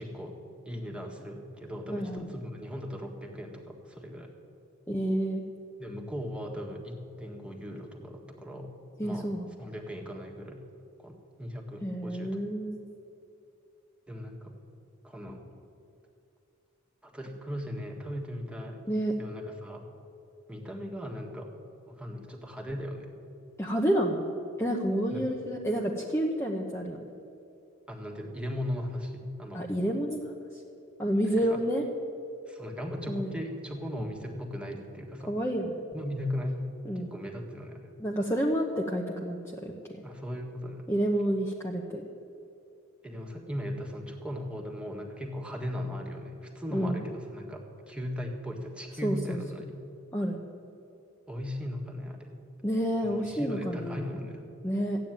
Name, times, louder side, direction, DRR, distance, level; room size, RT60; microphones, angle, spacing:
voice 1, 0.0-4.3 5.8-8.8 9.0-10.6 11.0-12.4 14.1-14.6 15.0-15.5 17.0-18.8 19.2-19.9 20.5-21.5 21.9-23.1 25.1-25.2 27.9-29.7 31.4-31.6 32.5-35.3 35.9-36.7 36.9-37.9 40.0-40.9 43.0-49.8 51.3-52.3 53.0-54.5, equal, 5° right, 1 dB, 1.7 m, -38 dB
voice 2, 1.9-2.3 4.9-5.4 9.0-9.5 11.8-12.8 18.9-19.1 23.6-24.3 24.6-27.0 29.5-30.2 31.0-31.8 33.1-33.3 35.3-35.7 36.9-37.1 38.0-39.7 40.9-42.0 46.7-47.0 49.0-49.4 50.1-50.4 52.6-54.2 54.6-55.0, equal, 10° left, -1 dB, 0.9 m, -29 dB
14.5 x 9.2 x 9.1 m, 2.7 s
head